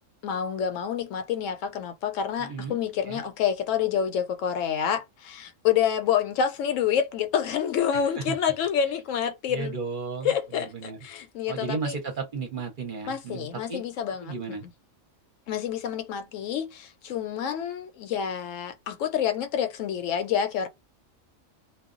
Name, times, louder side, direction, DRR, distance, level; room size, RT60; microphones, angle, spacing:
voice 1, 0.2-9.7 10.2-12.0 13.1-14.3 15.5-20.7, left 8 dB, 75° left, 0.9 m, -28 dB
voice 2, 2.4-2.8 3.0-3.2 7.9-8.4 9.5-11.0 11.5-13.8 14.2-14.7, right 4 dB, 50° right, 0.7 m, -34 dB
2.2 x 2.1 x 3.6 m
omnidirectional pair, 1.4 m